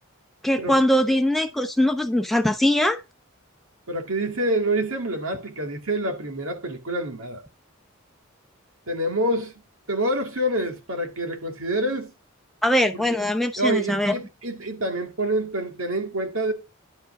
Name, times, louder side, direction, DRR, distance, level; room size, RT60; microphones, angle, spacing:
voice 1, 0.4-3.0 12.6-14.2, left 1 dB, ahead, 0.9 m, -21 dB
voice 2, 3.9-7.4 8.9-9.5 9.9-12.1 12.9-13.0 13.6-16.5, right 1 dB, 75° right, 2.2 m, -27 dB
10.5 x 5.0 x 4.9 m
head